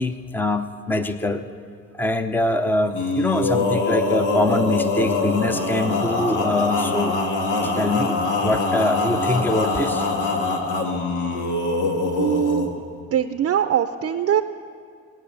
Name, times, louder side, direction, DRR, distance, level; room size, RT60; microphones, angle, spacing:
voice 1, 0.0-1.5 1.9-7.2 7.6-10.1, left 2 dB, 5° left, 9 dB, 0.7 m, -24 dB
Male singing, 2.9-12.7, left 3 dB, 85° left, 1.9 m, -23 dB
voice 2, 12.1-12.8 13.1-14.4, right 9 dB, 50° right, 9 dB, 0.6 m, -22 dB
20.0 x 9.6 x 7.0 m, 2.5 s
cardioid pair, 90°, 30 cm